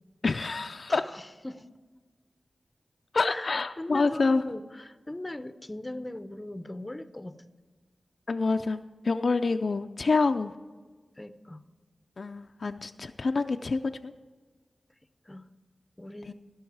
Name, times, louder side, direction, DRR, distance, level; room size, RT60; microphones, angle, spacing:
voice 1, 0.2-1.0 3.1-4.4 8.3-10.5 12.2-14.1 16.3-16.4, left 3 dB, 60° left, 8 dB, 0.4 m, -27 dB
voice 2, 0.9-1.7 3.2-7.4 11.2-11.6 15.3-15.5 16.0-16.3, left 1 dB, 20° left, 12 dB, 0.6 m, -40 dB
16.0 x 6.2 x 4.7 m, 1.4 s
wide cardioid pair, 70°, 0 cm